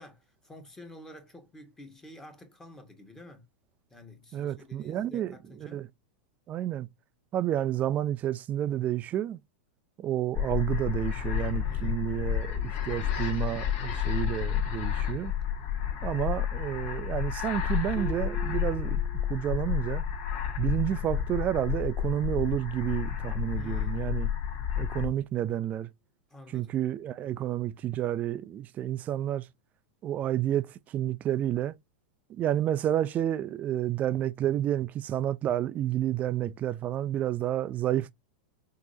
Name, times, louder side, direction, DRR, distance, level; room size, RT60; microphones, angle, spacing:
voice 1, 0.0-3.4 3.9-5.9 11.6-12.1 23.6-24.1 26.3-26.8, left 1 dB, 10° left, 1.5 m, -49 dB
voice 2, 4.3-5.3 5.6-5.9 6.5-6.9 7.3-9.4 10.0-15.3 16.0-19.0 19.3-20.0 20.6-24.3 24.8-25.9 26.5-29.4 30.0-31.8 32.3-38.1, right 12 dB, 30° right, 0.5 m, -30 dB
sound 1, 10.3-25.1, left 10 dB, 45° left, 1.7 m, -31 dB
Harp, 18.0-19.7 20.1-20.5 21.0-21.2, right 8 dB, 15° right, 0.9 m, -44 dB
6.0 x 3.0 x 2.7 m
hypercardioid pair, 120°, 5 cm